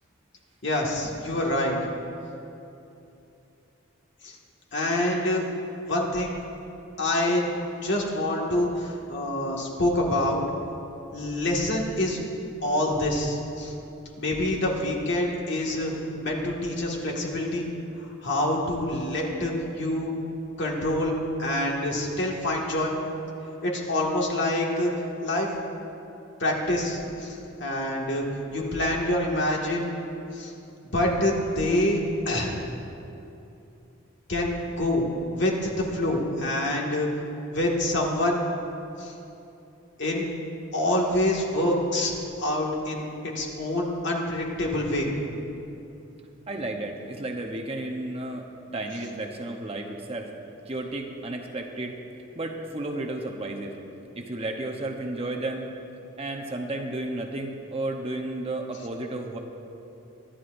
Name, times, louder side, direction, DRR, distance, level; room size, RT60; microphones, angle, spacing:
voice 1, 0.6-1.7 4.2-4.4 4.7-5.4 5.8-6.4 7.0-7.5 7.8-10.4 11.1-12.2 12.6-13.7 14.2-15.9 16.2-17.7 18.0-20.1 20.6-21.1 21.4-23.0 23.6-24.9 25.2-25.5 26.4-28.3 28.5-29.9 30.3-30.5 30.9-32.0 32.3-32.6 34.3-35.1 35.3-37.1 37.5-38.4 39.0-39.1 40.0-40.3 40.7-42.1 42.4-45.1, left 1 dB, 60° left, -2 dB, 2.0 m, -26 dB
voice 2, 46.5-48.5 48.7-50.3 50.7-52.0 52.3-53.8 54.2-55.7 56.2-59.4, right 2 dB, 30° right, 2 dB, 0.9 m, -32 dB
24.0 x 11.0 x 2.6 m, 2.8 s
head